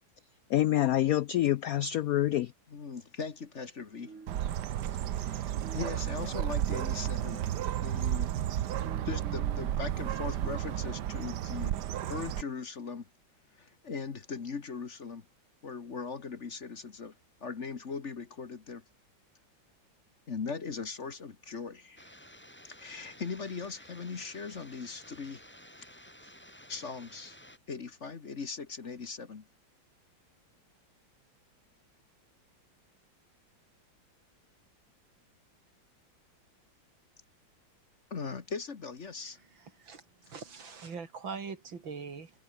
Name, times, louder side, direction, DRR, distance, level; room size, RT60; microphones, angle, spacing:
voice 1, 0.5-2.5, left 13 dB, 80° left, 0.8 m, -26 dB
voice 2, 2.7-4.1 5.1-8.3 9.1-11.8 12.1-13.1 13.6-15.3 15.6-17.1 17.4-18.8 20.3-22.1 22.8-25.4 26.7-27.4 27.7-29.5 38.1-39.4, left 5 dB, 40° left, 1.6 m, -39 dB
sound 1, 4.0-10.9, right 4 dB, 40° right, 2.5 m, -52 dB
Bird, 4.3-12.4, right 11 dB, 65° right, 1.4 m, -32 dB
sound 2, 22.0-27.6, equal, 5° left, 3.7 m, -53 dB
voice 3, 39.6-42.3, right 5 dB, 80° right, 3.6 m, -42 dB
omnidirectional pair, 2.1 m